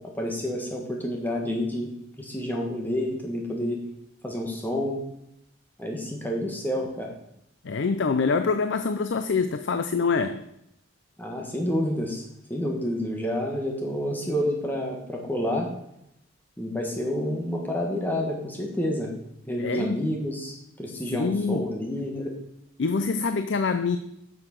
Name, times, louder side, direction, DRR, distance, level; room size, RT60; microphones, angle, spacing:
voice 1, 0.2-3.8 4.2-5.0 5.8-7.1 11.2-12.2 12.5-15.7 16.6-19.1 19.5-22.3, equal, 10° left, 0 dB, 1.5 m, -29 dB
voice 2, 7.6-10.4 19.6-20.1 21.1-21.7 22.8-24.0, left 4 dB, 65° left, 9 dB, 0.4 m, -25 dB
7.7 x 6.4 x 6.1 m, 0.80 s
head